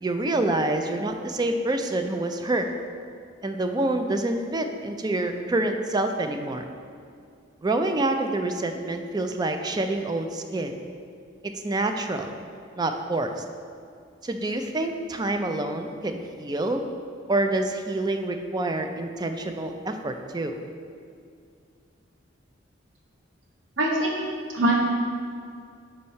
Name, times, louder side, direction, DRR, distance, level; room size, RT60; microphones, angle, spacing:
voice 1, 0.0-2.7 3.4-6.6 7.6-10.7 11.4-12.3 12.8-13.4 14.2-16.8 17.3-20.6, right 2 dB, 20° right, 6 dB, 0.4 m, -27 dB
voice 2, 23.8-24.1 24.5-24.7, right 1 dB, 75° right, -1 dB, 0.9 m, -22 dB
5.3 x 4.3 x 5.5 m, 2.3 s
head